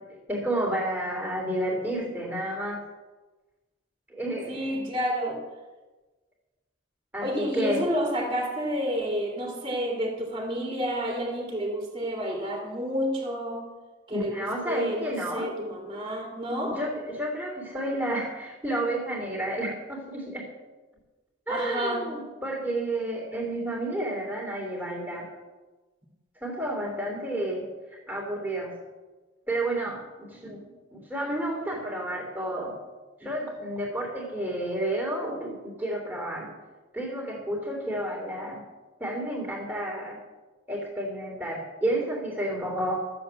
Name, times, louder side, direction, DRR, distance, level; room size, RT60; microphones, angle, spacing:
voice 1, 0.3-2.8 4.1-4.9 7.1-7.8 14.1-15.5 16.8-20.4 21.5-25.3 26.4-27.6 28.1-28.7 29.5-32.7 33.2-36.5 36.9-38.6 39.0-40.2 40.7-43.0, right 1 dB, 10° right, 0 dB, 3.2 m, -31 dB
voice 2, 4.5-5.4 7.2-13.7 14.1-16.8 21.5-22.1, equal, 25° right, 0 dB, 2.7 m, -30 dB
13.5 x 7.7 x 7.6 m, 1.2 s
head